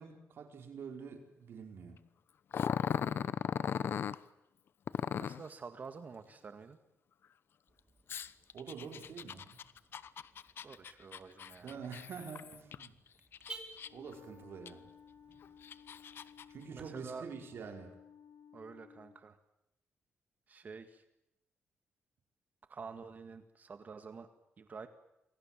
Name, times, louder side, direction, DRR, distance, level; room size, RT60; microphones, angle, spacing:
voice 1, 0.0-2.0 8.5-9.6 11.6-13.0 13.9-14.9 16.5-18.0, right 6 dB, 65° right, 5 dB, 4.7 m, -47 dB
Growling, 2.5-4.2 4.9-5.5 8.1-12.9 13.3-14.1 14.7-14.8 15.4-16.4, left 8 dB, 60° left, 1.0 m, -37 dB
voice 2, 5.2-6.8 10.6-11.8 16.7-17.3 18.5-19.4 20.5-21.0 22.7-24.3 24.6-24.9, right 5 dB, 40° right, 9 dB, 1.9 m, -48 dB
Car / Alarm, 7.7-16.8, right 2 dB, 20° right, 4.8 m, -57 dB
Wind instrument woodwind instrument, 13.8-19.2, left 8 dB, 80° left, 3.3 m, -58 dB
29.0 x 23.0 x 7.5 m, 0.85 s
cardioid pair, 125°, 4 cm